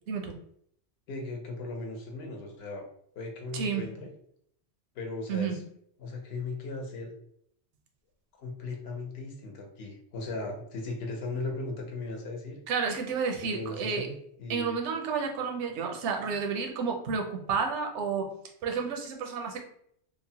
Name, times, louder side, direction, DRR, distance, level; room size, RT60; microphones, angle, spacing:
voice 1, 1.1-2.8 3.1-4.1 4.9-5.6 6.0-7.1 8.4-12.6 13.5-14.8, left 3 dB, 70° left, 1 dB, 0.9 m, -37 dB
voice 2, 3.5-3.9 5.3-5.6 12.7-14.1 14.5-18.3 18.6-19.6, right 5 dB, 85° right, 3 dB, 0.9 m, -31 dB
3.0 x 2.0 x 2.7 m, 0.68 s
omnidirectional pair, 1.2 m